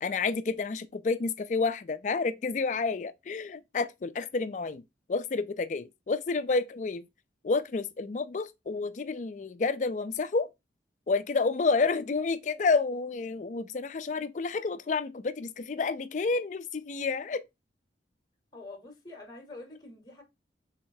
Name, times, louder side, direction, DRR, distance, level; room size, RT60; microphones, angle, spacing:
voice 1, 0.0-4.8 5.1-7.0 7.4-10.5 11.1-17.4, left 4 dB, 40° left, 0.4 m, -29 dB
voice 2, 18.5-20.2, left 2 dB, 20° left, 0.9 m, -46 dB
3.5 x 3.3 x 4.7 m
head